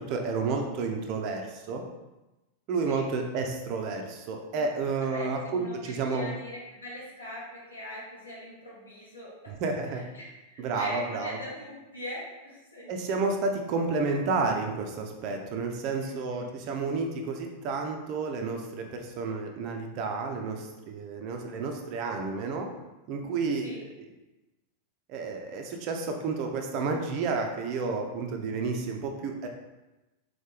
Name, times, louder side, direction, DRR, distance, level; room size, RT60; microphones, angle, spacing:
voice 1, 0.0-1.8 2.7-6.3 9.5-10.0 10.6-11.4 12.9-22.7 23.1-23.7 24.0-24.1 25.1-29.5, right 4 dB, 40° right, 3 dB, 0.6 m, -31 dB
voice 2, 5.1-9.5 9.9-12.9 16.0-16.5 23.6-23.8, left 1 dB, 80° left, -6 dB, 1.3 m, -42 dB
3.8 x 3.2 x 3.4 m, 1.1 s
figure-of-eight pair, 90°, 0 cm